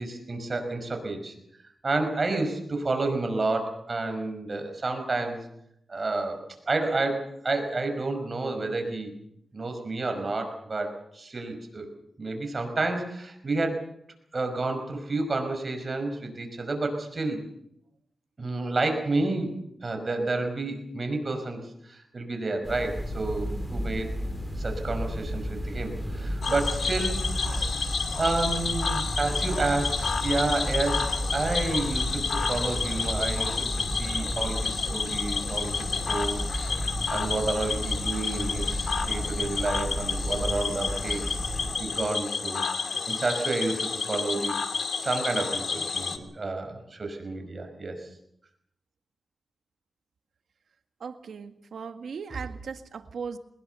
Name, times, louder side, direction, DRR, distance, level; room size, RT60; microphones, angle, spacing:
voice 1, 0.0-1.3 1.8-5.4 5.9-9.1 9.5-11.9 12.2-13.8 14.3-17.4 18.4-19.5 19.8-24.1 24.6-27.8 28.2-31.1 31.3-36.7 37.1-41.4 41.8-44.6 45.0-48.1, right 2 dB, 40° right, 5 dB, 5.5 m, -30 dB
sound 1, 22.6-41.8, equal, 10° left, 4.7 m, -33 dB
Cricket / Frog, 26.4-46.2, left 5 dB, 65° left, 2.4 m, -30 dB
voice 2, 51.0-53.4, right 5 dB, 80° right, 8 dB, 1.7 m, -38 dB
22.5 x 20.5 x 6.9 m, 0.76 s
wide cardioid pair, 90°, 0 cm